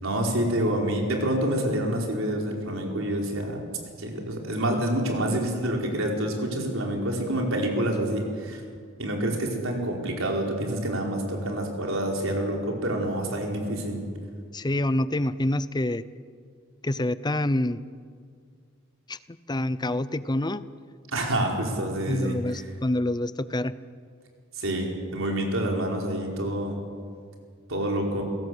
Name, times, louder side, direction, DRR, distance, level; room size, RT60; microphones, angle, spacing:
voice 1, 0.0-3.6 4.0-8.6 9.0-14.0 21.1-22.7 24.5-26.8 27.7-28.2, right 1 dB, 75° right, 0 dB, 4.8 m, -27 dB
voice 2, 14.5-16.0 16.8-17.8 19.1-19.2 19.5-20.7 22.1-23.7, left 1 dB, 20° left, 15 dB, 0.7 m, -26 dB
29.0 x 17.0 x 7.9 m, 2.1 s
head